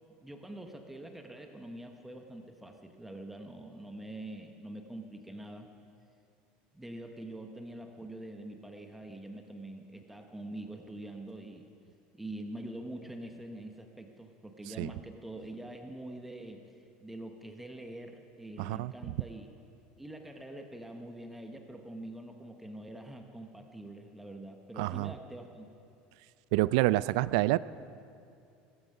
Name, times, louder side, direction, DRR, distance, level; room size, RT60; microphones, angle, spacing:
voice 1, 0.2-5.7 6.7-11.7 12.1-16.6 17.0-19.5 20.0-25.7, right 1 dB, 5° right, 4 dB, 0.8 m, -45 dB
voice 2, 18.6-19.1 24.8-25.1 26.5-27.6, right 18 dB, 75° right, 18 dB, 0.4 m, -28 dB
16.5 x 15.0 x 5.5 m, 2.6 s
cardioid pair, 160°, 4 cm